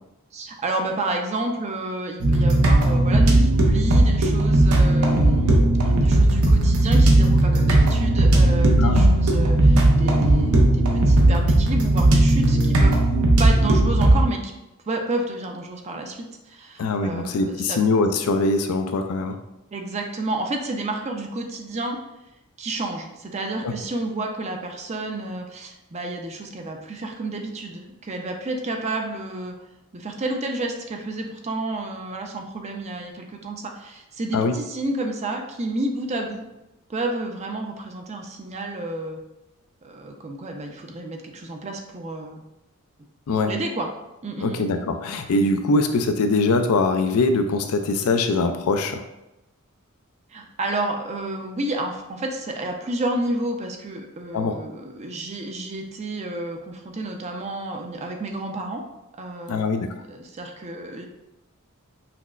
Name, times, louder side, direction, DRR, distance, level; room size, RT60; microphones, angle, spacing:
voice 1, 0.3-13.0 13.4-14.5 14.9-17.8 19.7-22.0 22.6-29.5 29.9-36.4 36.9-39.2 39.8-42.4 43.5-43.9 44.2-44.6 50.3-58.8 59.2-59.7 60.1-61.1, right 2 dB, 30° right, 3 dB, 0.4 m, -30 dB
sound 1, 2.2-14.3, right 1 dB, 70° right, 0.6 m, -17 dB
voice 2, 8.8-9.1 16.8-19.4 23.6-23.7 34.3-34.6 43.3-43.5 44.4-49.0 54.3-54.6 59.5-59.9, left 3 dB, 75° left, 7 dB, 0.4 m, -22 dB
5.7 x 2.1 x 2.4 m, 0.93 s
head